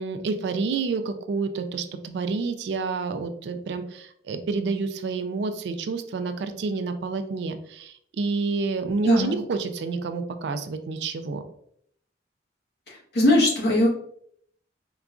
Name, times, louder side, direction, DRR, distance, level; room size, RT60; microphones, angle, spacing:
voice 1, 0.0-11.4, right 4 dB, 70° right, 9 dB, 0.3 m, -29 dB
voice 2, 9.0-9.3 12.9-13.9, left 1 dB, 60° left, -4 dB, 1.1 m, -20 dB
3.8 x 2.3 x 2.4 m, 0.68 s
head